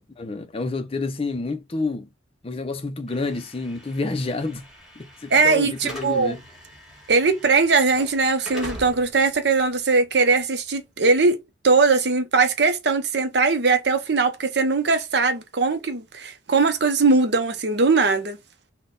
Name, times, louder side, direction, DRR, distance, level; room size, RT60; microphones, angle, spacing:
voice 1, 0.2-2.1 2.4-4.6 5.0-6.4, left 3 dB, 30° left, 0.4 m, -29 dB
Slam / Alarm, 3.1-11.2, right 1 dB, ahead, 1.5 m, -42 dB
voice 2, 5.3-6.3 7.1-11.4 11.6-18.4, right 4 dB, 55° right, 0.6 m, -20 dB
3.9 x 2.2 x 3.7 m
head